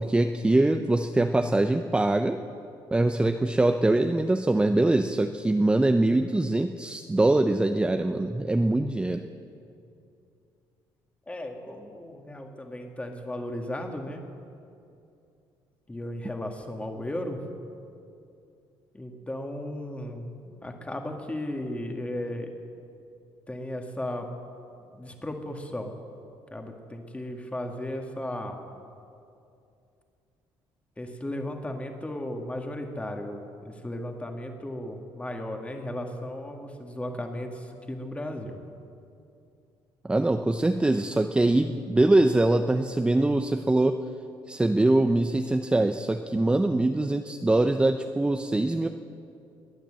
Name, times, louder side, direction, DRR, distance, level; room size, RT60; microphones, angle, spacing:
voice 1, 0.0-2.4 2.9-9.2 40.1-44.0 44.5-48.9, right 2 dB, 10° right, 7 dB, 0.5 m, -23 dB
voice 2, 11.3-14.2 15.9-17.4 18.9-20.3 20.6-22.5 23.5-24.3 24.9-25.9 26.5-28.6 31.0-38.6, left 1 dB, 15° left, 4 dB, 1.9 m, -35 dB
20.5 x 9.1 x 7.7 m, 2.6 s
cardioid pair, 100°, 10 cm